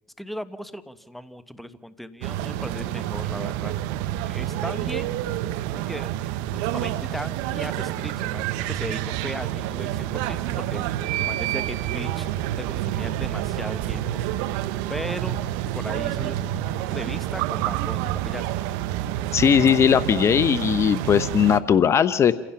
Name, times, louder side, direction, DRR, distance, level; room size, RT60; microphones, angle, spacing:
voice 1, 0.2-3.9 4.2-5.1 5.7-6.1 6.5-10.8 11.2-12.3 12.6-14.2 14.9-15.4 15.7-18.5, equal, ahead, 12 dB, 1.3 m, -37 dB
sound 1, 2.2-21.6, right 13 dB, 80° right, 0.9 m, -28 dB
voice 2, 19.3-22.3, left 8 dB, 40° left, 15 dB, 0.7 m, -19 dB
28.5 x 16.5 x 5.8 m, 1.1 s
supercardioid pair, 85°, 7 cm